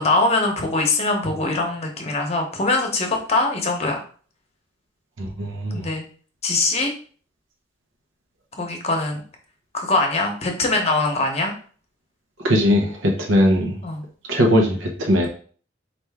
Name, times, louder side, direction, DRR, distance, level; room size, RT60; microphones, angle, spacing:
voice 1, 0.0-4.0 5.7-6.0 6.4-6.9 8.5-9.2 9.7-11.5 13.8-14.0, left 2 dB, 35° left, 3 dB, 0.8 m, -22 dB
voice 2, 5.2-5.8 12.4-13.8 14.3-15.3, equal, 85° right, 1 dB, 0.8 m, -19 dB
4.4 x 2.5 x 3.5 m, 0.43 s
head